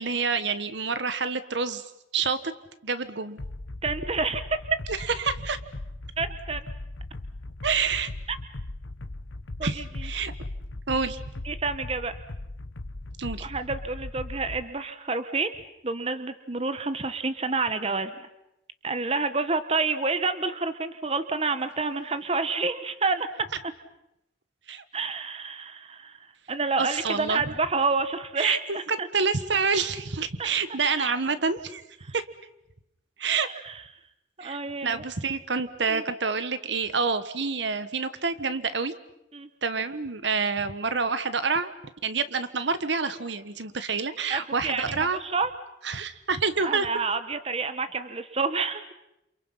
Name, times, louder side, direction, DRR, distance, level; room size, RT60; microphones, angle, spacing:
voice 1, 0.0-1.8 2.1-2.5 2.8-3.4 4.9-5.6 7.6-8.1 9.6-10.3 10.9-11.2 13.2-13.5 24.7-24.8 26.8-27.5 28.4-31.8 32.1-32.3 33.2-33.5 34.4-38.9 39.6-41.7 42.0-45.2 45.8-46.9, right 5 dB, 70° right, 12 dB, 1.4 m, -28 dB
sound 1, 3.4-14.6, left 2 dB, 80° left, 1.1 m, -38 dB
voice 2, 3.8-4.4 6.2-6.6 8.3-8.4 9.6-9.7 11.5-12.1 13.4-15.5 15.8-18.1 18.8-23.3 24.9-26.2 26.5-29.1 30.4-30.5 31.0-31.2 33.6-33.7 34.4-35.0 35.9-36.0 39.3-39.5 44.3-44.8 45.2-45.5 46.6-48.9, right 4 dB, 30° right, 11 dB, 1.0 m, -28 dB
29.0 x 28.0 x 5.8 m, 0.85 s
head